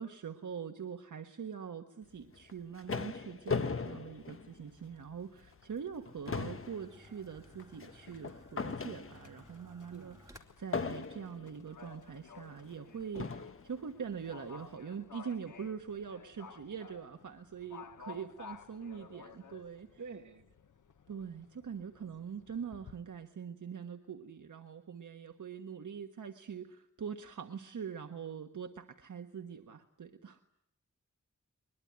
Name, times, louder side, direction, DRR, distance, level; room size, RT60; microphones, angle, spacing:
voice 1, 0.0-20.0 21.1-30.4, right 7 dB, 85° right, 5 dB, 1.4 m, -43 dB
sound 1, 2.3-5.0 5.5-5.6 5.9-9.5 10.7-11.5 12.4-12.5 13.2-13.7, left 5 dB, 45° left, 1.2 m, -38 dB
Livestock farm animals working animals, 3.6-23.0, left 6 dB, 85° left, 1.4 m, -56 dB
sound 2, 4.8-10.4, equal, 10° right, 2.5 m, -59 dB
voice 2, 9.9-10.3 20.0-20.4, right 5 dB, 70° right, 5 dB, 2.2 m, -48 dB
22.0 x 22.0 x 10.0 m, 0.76 s
wide cardioid pair, 100°, 30 cm